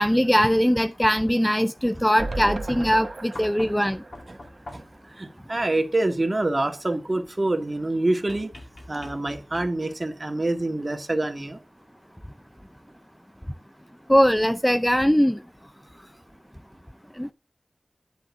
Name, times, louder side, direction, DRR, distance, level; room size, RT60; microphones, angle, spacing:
voice 1, 0.0-4.0 14.1-15.4 17.2-17.3, equal, 5° left, 0.5 m, -21 dB
sound 1, 2.2-5.4 5.8-5.9 6.1-6.2, right 2 dB, 60° right, 0.9 m, -36 dB
sound 2, 3.3-5.1 8.3-10.0 11.6-11.7, left 1 dB, 70° left, 2.8 m, -44 dB
voice 2, 5.2-8.5 8.9-11.6, right 2 dB, 40° right, 1.7 m, -26 dB
10.0 x 3.9 x 7.0 m
wide cardioid pair, 55°, 0 cm